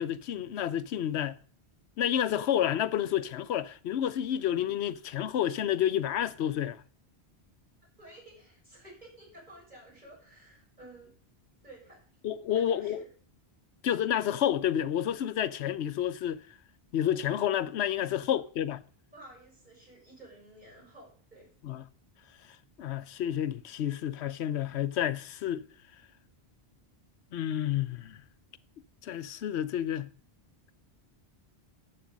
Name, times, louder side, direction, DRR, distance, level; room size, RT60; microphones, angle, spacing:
voice 1, 0.0-1.4 2.0-6.8 12.2-13.0 13.8-16.4 16.9-18.8 21.6-21.8 22.8-25.6 27.3-28.2 29.0-30.1, left 10 dB, 90° left, 0.9 m, -30 dB
voice 2, 8.0-11.1 11.6-12.0 12.5-13.1 18.1-18.4 19.1-21.5, right 1 dB, 45° right, 6.1 m, -53 dB
12.0 x 7.9 x 5.2 m
omnidirectional pair, 1.1 m